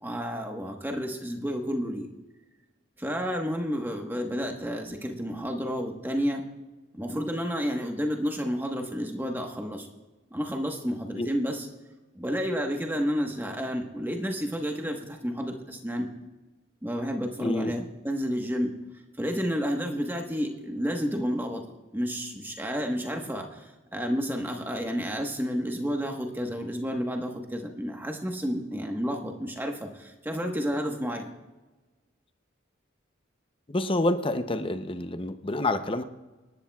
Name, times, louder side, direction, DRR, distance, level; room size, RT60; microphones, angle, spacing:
voice 1, 0.0-2.1 3.0-6.4 6.9-9.9 10.3-11.7 12.1-16.1 16.8-18.7 19.2-21.6 21.9-31.3, equal, 10° right, 2 dB, 1.2 m, -30 dB
voice 2, 17.4-17.7 33.7-36.0, left 2 dB, 25° left, 9 dB, 0.7 m, -27 dB
25.5 x 11.5 x 2.4 m, 1.2 s
head